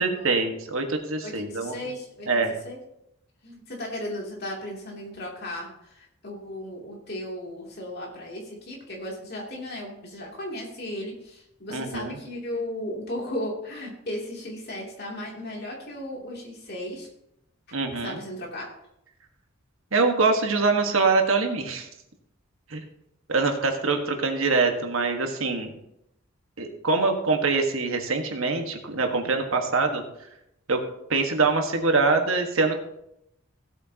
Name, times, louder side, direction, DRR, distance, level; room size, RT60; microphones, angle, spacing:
voice 1, 0.0-1.8 2.3-2.5 11.7-12.1 17.7-18.2 19.9-21.9 22.7-22.8 23.3-25.7 26.6-30.0 30.7-30.8 31.1-32.7, right 3 dB, 75° right, 3 dB, 1.6 m, -24 dB
voice 2, 1.2-2.8 3.4-17.1 17.9-18.7, left 1 dB, 50° left, -2 dB, 2.9 m, -36 dB
16.5 x 8.3 x 2.9 m, 0.82 s
head